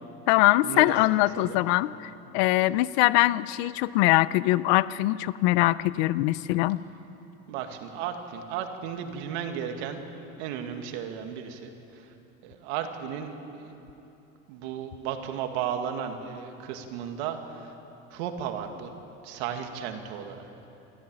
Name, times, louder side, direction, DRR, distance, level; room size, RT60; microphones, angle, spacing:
voice 1, 0.3-6.8, left 17 dB, 80° left, 18 dB, 0.7 m, -23 dB
voice 2, 7.5-10.0 10.4-11.7 12.4-13.7 14.5-17.7 18.1-18.9 19.2-20.4, right 8 dB, 85° right, 5 dB, 2.2 m, -34 dB
25.0 x 14.5 x 8.9 m, 3.0 s
cardioid pair, 175°, 32 cm